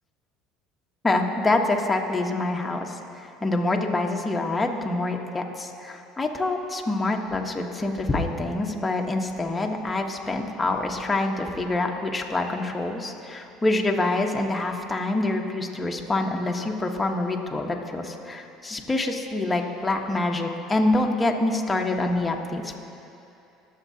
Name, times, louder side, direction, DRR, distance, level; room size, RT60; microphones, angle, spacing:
voice 1, 1.0-3.0 3.4-22.8, left 2 dB, 15° left, 1 dB, 1.2 m, -26 dB
21.0 x 7.4 x 2.8 m, 2.7 s
supercardioid pair, 90°, 0 cm